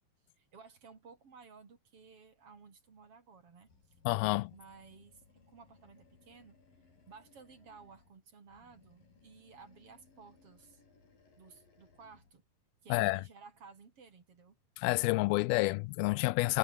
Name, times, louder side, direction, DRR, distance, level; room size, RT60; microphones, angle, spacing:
voice 1, 0.4-3.7 4.5-5.2 5.5-6.6 7.1-10.8 11.4-12.4 12.8-14.6, right 5 dB, 40° right, 3.6 m, -56 dB
Animal, 3.7-8.2 8.5-12.4, left 4 dB, 65° left, 8.5 m, -65 dB
voice 2, 4.1-4.5 12.9-13.2 14.8-16.6, left 22 dB, 85° left, 2.5 m, -29 dB
omnidirectional pair, 4.3 m